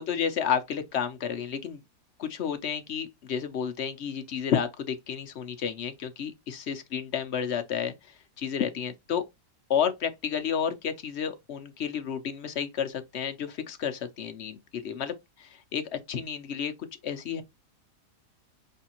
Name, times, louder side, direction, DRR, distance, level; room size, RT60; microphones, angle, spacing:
voice 1, 0.0-1.8 2.2-9.2 9.7-16.7 17.0-17.4, left 8 dB, 60° left, 0.7 m, -31 dB
5.5 x 3.4 x 2.9 m
omnidirectional pair, 1.7 m